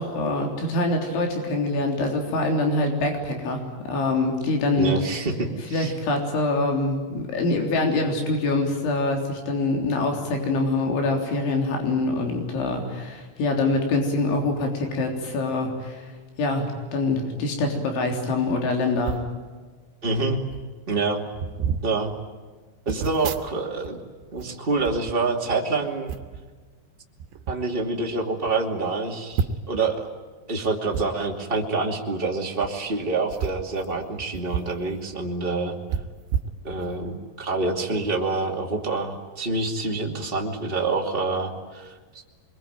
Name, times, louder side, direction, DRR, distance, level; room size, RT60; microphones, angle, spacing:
voice 1, 0.0-5.0 5.7-16.0 16.4-19.2, left 2 dB, 90° left, 2 dB, 6.0 m, -25 dB
voice 2, 4.8-5.9 20.0-20.4 20.9-21.2 21.8-22.1 22.9-24.0 24.3-26.1 27.5-30.1 30.5-35.7 36.6-41.9, right 3 dB, 20° right, 1 dB, 1.7 m, -26 dB
sound 1, 19.0-19.3 20.2-20.3 20.5-20.7 21.3-21.9 22.9-23.9 24.2-25.6 26.1-26.4 27.2-27.6 28.1-28.2 28.5-28.6 29.3-29.8 30.9-31.1 32.5-32.7 33.3-34.8 35.1-35.2 35.9-37.1 37.6-37.7, right 7 dB, 85° right, 3.6 m, -31 dB
26.0 x 23.0 x 9.2 m, 1.4 s
omnidirectional pair, 5.2 m